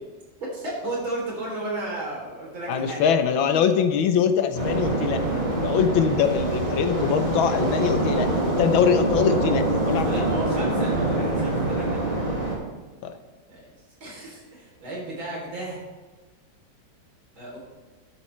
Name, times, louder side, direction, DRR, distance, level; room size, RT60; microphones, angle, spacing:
voice 1, 0.4-3.0 10.0-12.2 13.5-13.7 14.0-15.9 17.4-17.6, right 2 dB, 80° right, -3 dB, 4.2 m, -33 dB
voice 2, 2.7-5.2 5.6-10.3 13.0-13.2, left 7 dB, 80° left, 9 dB, 1.6 m, -23 dB
sound 1, 4.5-12.5, right 2 dB, 40° right, 3.5 m, -25 dB
12.0 x 11.0 x 3.3 m, 1.3 s
omnidirectional pair, 2.2 m